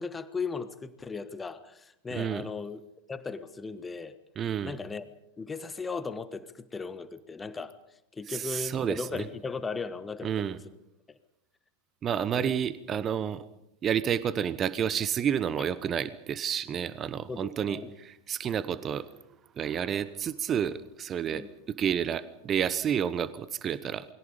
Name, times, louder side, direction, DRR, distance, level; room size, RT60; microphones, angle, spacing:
voice 1, 0.0-2.8 3.1-4.2 4.6-5.0 5.4-7.7 8.1-10.6 11.1-11.2 12.3-12.5 17.3-17.9 21.3-21.6, left 4 dB, 15° left, 12 dB, 1.4 m, -37 dB
voice 2, 2.1-2.4 4.4-4.8 8.3-9.2 10.2-10.6 12.0-13.4 13.8-19.1 19.6-24.0, right 8 dB, 25° right, 16 dB, 1.0 m, -30 dB
28.5 x 22.5 x 5.3 m, 0.85 s
figure-of-eight pair, 90°, 0 cm